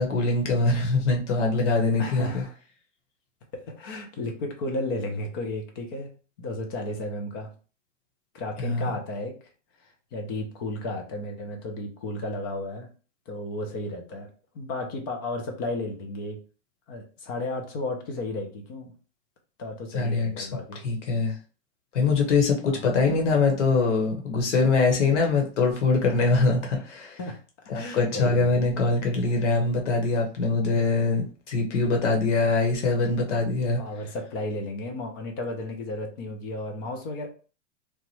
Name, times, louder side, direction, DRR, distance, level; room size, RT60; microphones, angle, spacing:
voice 1, 0.0-2.4 8.6-8.9 19.9-20.5 20.8-21.4 21.9-27.2 27.7-33.8, left 3 dB, 70° left, 2 dB, 1.2 m, -23 dB
voice 2, 2.0-2.5 3.5-6.1 6.4-7.5 8.3-9.3 10.1-12.9 13.3-14.3 14.5-16.4 16.9-18.9 19.6-20.8 22.7-22.9 27.2-27.4 27.7-28.6 29.3-29.4 33.8-37.3, left 2 dB, 20° left, 3 dB, 0.3 m, -33 dB
2.9 x 2.1 x 3.0 m, 0.36 s
hypercardioid pair, 135°, 37 cm